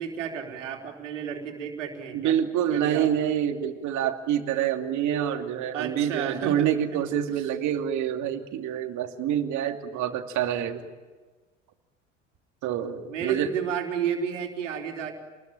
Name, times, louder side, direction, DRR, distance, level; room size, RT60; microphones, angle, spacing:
voice 1, 0.0-2.4 2.7-3.1 5.7-6.7 13.1-15.1, right 7 dB, 75° right, 2 dB, 3.9 m, -32 dB
voice 2, 2.1-10.8 12.6-13.5, right 10 dB, 50° right, 5 dB, 2.8 m, -27 dB
28.0 x 21.0 x 9.1 m, 1.3 s
hypercardioid pair, 75°, 37 cm